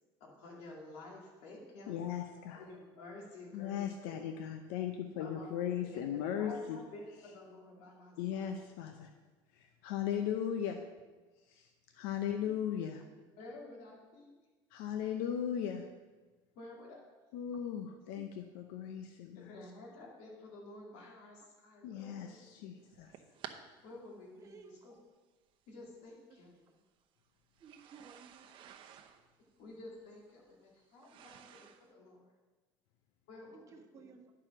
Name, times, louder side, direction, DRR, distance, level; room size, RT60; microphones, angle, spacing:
voice 1, 0.2-2.1 2.5-4.1 5.2-8.2 13.3-14.3 16.6-17.0 19.3-22.4 23.8-25.0 25.7-26.7 29.6-32.2 33.3-34.1, left 2 dB, 70° left, -3 dB, 2.3 m, -51 dB
voice 2, 1.9-2.6 3.5-6.8 8.2-9.1 9.6-10.8 11.5-11.7 11.9-13.1 14.7-15.8 17.3-19.5 21.8-23.1, left 9 dB, 90° left, 5 dB, 0.7 m, -37 dB
sound 1, 22.8-23.6 24.6-24.7 25.9-26.0 27.5-31.9, right 10 dB, 50° right, 0.8 m, -53 dB
voice 3, 24.4-24.8 27.6-28.7 33.5-33.6 33.9-34.3, right 6 dB, 30° right, 4 dB, 1.1 m, -56 dB
10.5 x 4.8 x 6.0 m, 1.2 s
cardioid pair, 135°, 11 cm